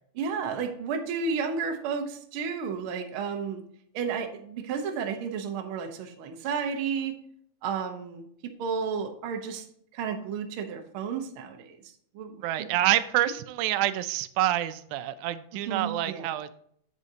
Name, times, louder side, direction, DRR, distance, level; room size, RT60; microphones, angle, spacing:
voice 1, 0.2-3.6 3.9-7.1 7.6-8.3 8.6-9.6 9.9-11.8 12.1-12.7 15.7-16.3, right 6 dB, 65° right, 4 dB, 1.4 m, -32 dB
voice 2, 12.4-16.5, right 13 dB, 90° right, 12 dB, 2.0 m, -27 dB
8.1 x 8.0 x 2.8 m, 0.65 s
omnidirectional pair, 3.4 m